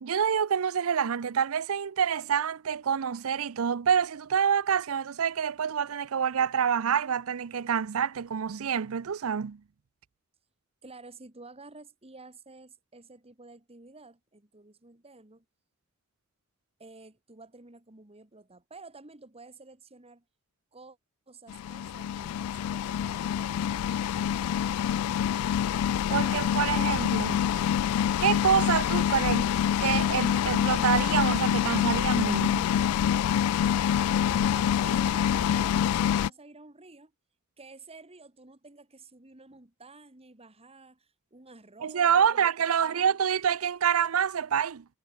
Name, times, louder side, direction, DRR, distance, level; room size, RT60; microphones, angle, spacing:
voice 1, 0.0-9.6 26.1-27.4 28.2-29.5 29.8-32.7 41.8-44.8, right 7 dB, 75° right, 0.5 m, -27 dB
voice 2, 10.8-15.4 16.8-20.2 20.7-21.0 21.3-24.1 34.1-37.1 37.6-42.5 42.8-43.2, right 3 dB, 30° right, 2.0 m, -51 dB
sound 1, 21.5-36.3, left 9 dB, 90° left, 0.3 m, -26 dB
head